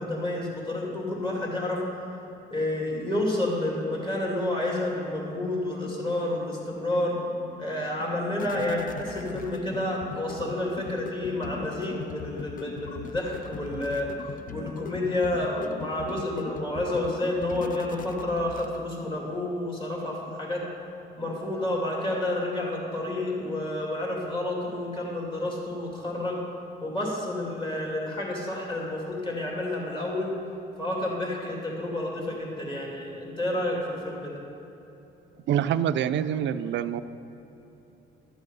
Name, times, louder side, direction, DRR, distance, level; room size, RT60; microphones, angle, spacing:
voice 1, 0.0-1.8 2.5-7.2 7.6-14.1 14.5-20.6 21.2-26.4 26.8-30.3 30.8-34.4, left 1 dB, 25° left, -3 dB, 2.8 m, -30 dB
sound 1, 6.6-19.1, left 6 dB, 45° left, 0.5 m, -41 dB
voice 2, 35.5-37.0, right 9 dB, 70° right, 12 dB, 0.5 m, -26 dB
12.5 x 7.1 x 5.5 m, 3.0 s
cardioid pair, 90°, 20 cm